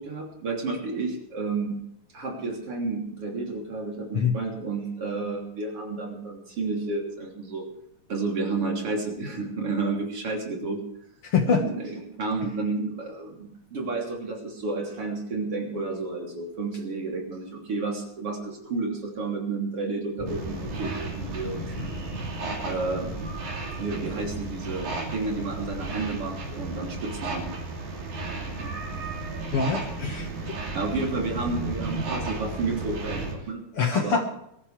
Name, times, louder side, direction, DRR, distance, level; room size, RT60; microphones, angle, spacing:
voice 1, 0.0-1.8 2.1-7.7 8.1-10.8 11.5-22.0 22.6-23.1 23.8-27.5 30.7-33.6 33.9-34.4, right 3 dB, 50° right, 0 dB, 3.9 m, -31 dB
voice 2, 11.2-11.7 29.5-30.6 33.7-34.3, left 5 dB, 55° left, 4 dB, 2.2 m, -25 dB
Thunder, 20.2-26.1, left 1 dB, 25° left, 1.0 m, -40 dB
sound 1, 20.3-33.3, right 3 dB, 75° right, 4.4 m, -34 dB
22.5 x 14.0 x 3.4 m, 0.77 s
omnidirectional pair, 3.5 m